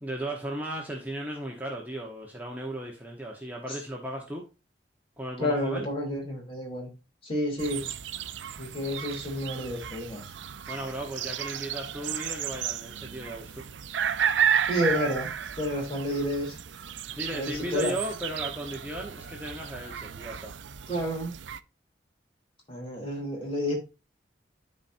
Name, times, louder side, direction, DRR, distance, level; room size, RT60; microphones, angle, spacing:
voice 1, 0.0-4.4 5.2-5.9 10.7-13.6 17.2-20.5, right 1 dB, 10° right, 1.1 m, -36 dB
voice 2, 5.4-6.9 7.2-7.8 8.6-10.3 14.7-15.3 15.6-16.6 17.3-17.9 20.9-21.3 22.7-23.8, equal, 30° left, 3.2 m, -30 dB
sound 1, 7.6-21.6, right 8 dB, 90° right, 0.6 m, -33 dB
12.5 x 4.3 x 2.7 m
head